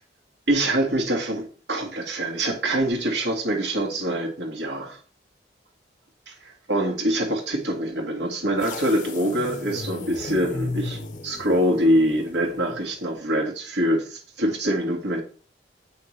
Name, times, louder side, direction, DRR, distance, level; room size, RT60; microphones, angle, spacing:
voice 1, 0.5-5.0 6.3-15.2, right 1 dB, 80° right, 2 dB, 1.8 m, -24 dB
sound 1, 8.6-12.9, left 2 dB, 45° left, 0.7 m, -34 dB
8.5 x 5.7 x 3.2 m, 0.42 s
head